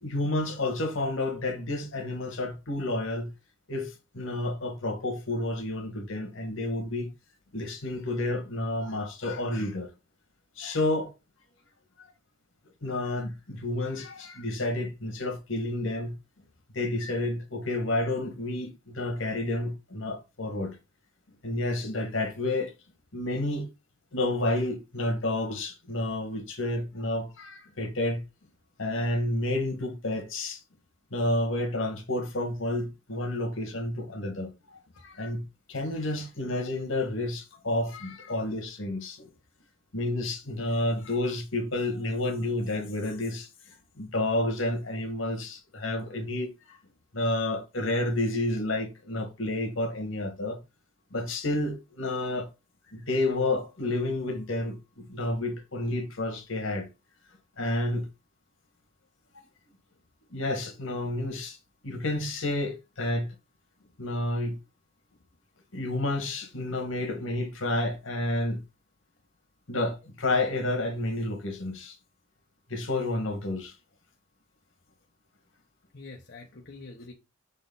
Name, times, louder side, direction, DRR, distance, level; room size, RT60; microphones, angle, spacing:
voice 1, 0.0-3.3 3.7-7.1 7.5-9.9 10.6-11.1 12.8-16.1 16.7-20.8 21.4-22.7 23.1-23.7 24.1-28.2 28.8-30.6 31.1-39.3 39.9-43.5 44.0-46.8 47.1-50.6 51.1-52.5 52.9-56.9 57.6-58.1 60.3-61.6 61.8-63.3 64.0-64.6 65.7-68.6 69.7-72.0 72.7-73.7, left 1 dB, 75° left, 1.6 m, -30 dB
voice 2, 75.9-77.1, left 3 dB, 55° left, 0.9 m, -47 dB
6.3 x 4.1 x 3.9 m
head